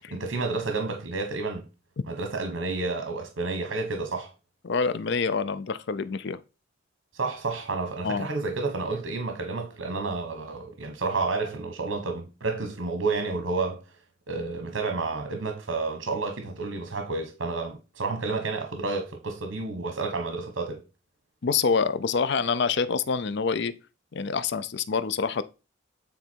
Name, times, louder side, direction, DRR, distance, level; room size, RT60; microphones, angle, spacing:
voice 1, 0.0-1.7 2.1-4.3 7.1-13.8 14.3-20.8, right 3 dB, 80° right, 1.2 m, -30 dB
voice 2, 4.6-6.4 8.0-8.3 21.4-23.7 24.1-25.4, left 5 dB, 60° left, 0.5 m, -26 dB
9.4 x 3.9 x 4.5 m
head